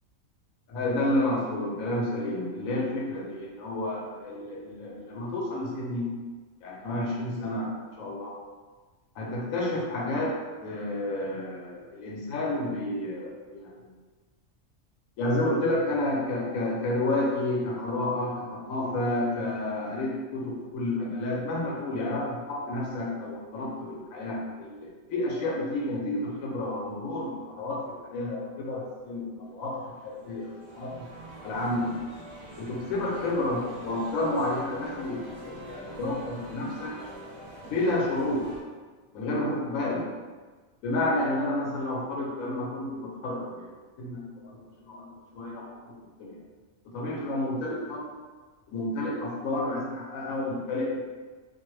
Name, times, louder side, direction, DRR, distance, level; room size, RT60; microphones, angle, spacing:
voice 1, 0.7-6.1 6.6-7.7 8.0-8.3 9.2-10.4 10.6-13.9 15.2-31.1 31.4-31.9 32.6-36.9 37.6-38.5 39.1-40.1 40.8-43.7 44.0-45.1 45.3-45.8 46.2-46.3 46.9-48.2 48.7-51.1, left 1 dB, 90° left, -2 dB, 1.1 m, -30 dB
sound 1, 29.7-38.6, right 1 dB, 40° right, 0.4 m, -45 dB
2.4 x 2.0 x 3.1 m, 1.4 s
omnidirectional pair, 1.4 m